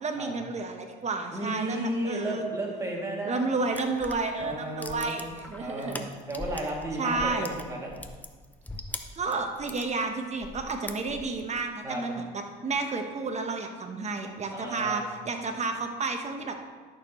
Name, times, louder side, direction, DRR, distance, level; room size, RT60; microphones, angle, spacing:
voice 1, 0.0-2.5 3.2-6.1 7.0-7.5 9.1-16.5, right 3 dB, 35° right, 4 dB, 1.2 m, -31 dB
voice 2, 1.3-3.5 4.4-5.3 5.6-6.0 6.3-7.9 11.8-12.0 14.5-15.0, right 1 dB, 15° right, -3 dB, 2.5 m, -33 dB
sound 1, 3.7-6.8 7.1-9.9 10.4-11.5, left 2 dB, 10° left, 0.7 m, -41 dB
11.5 x 6.5 x 3.1 m, 1.4 s
supercardioid pair, 80°, 19 cm